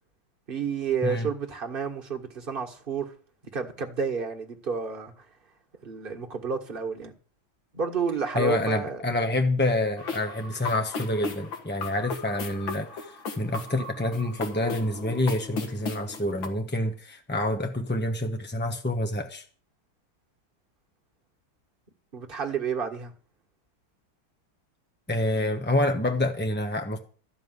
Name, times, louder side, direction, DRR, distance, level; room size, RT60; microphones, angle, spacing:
voice 1, 0.5-3.1 3.5-5.3 5.8-7.1 7.7-9.0 22.1-23.1, right 6 dB, 30° right, 1.7 m, -30 dB
voice 2, 8.3-19.4 25.1-27.0, left 1 dB, 15° left, 0.4 m, -27 dB
sound 1, 10.0-16.5, left 4 dB, 70° left, 2.4 m, -36 dB
14.5 x 5.4 x 9.5 m
omnidirectional pair, 2.2 m